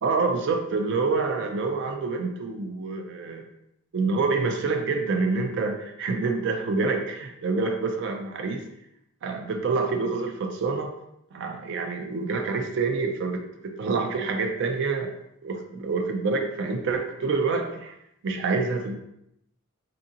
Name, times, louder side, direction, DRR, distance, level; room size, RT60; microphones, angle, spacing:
voice 1, 0.0-3.4 3.9-8.7 9.2-10.9 11.3-15.1 15.4-17.9 18.2-18.9, right 4 dB, 55° right, 4 dB, 0.4 m, -27 dB
2.7 x 2.5 x 2.6 m, 0.79 s
head